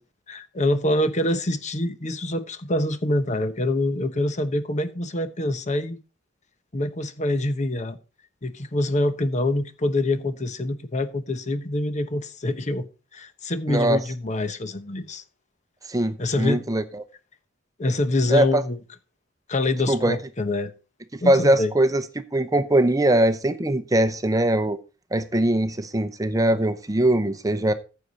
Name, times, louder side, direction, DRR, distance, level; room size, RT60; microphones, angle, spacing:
voice 1, 0.3-6.0 6.7-8.0 8.4-12.9 13.1-15.2 16.2-16.6 17.8-18.8 19.5-20.7 21.2-21.7, left 1 dB, 40° left, 1.0 m, -25 dB
voice 2, 13.7-14.0 15.9-17.0 18.3-18.6 19.9-20.2 21.2-22.0 22.3-24.8 25.1-27.7, right 1 dB, 20° right, 0.8 m, -21 dB
14.5 x 6.7 x 4.1 m
head